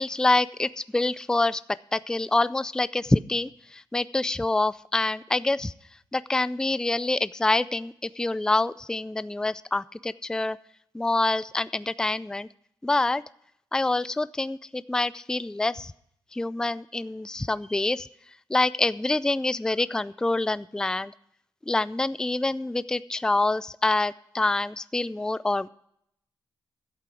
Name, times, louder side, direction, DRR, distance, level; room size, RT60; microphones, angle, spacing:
voice 1, 0.0-1.6 1.9-5.7 6.1-10.6 10.9-12.5 12.8-13.2 13.7-15.9 16.3-18.1 18.5-21.1 21.7-25.7, left 2 dB, 10° left, 17 dB, 0.3 m, -26 dB
11.5 x 8.2 x 6.0 m, 0.71 s
cardioid pair, 75°, 9 cm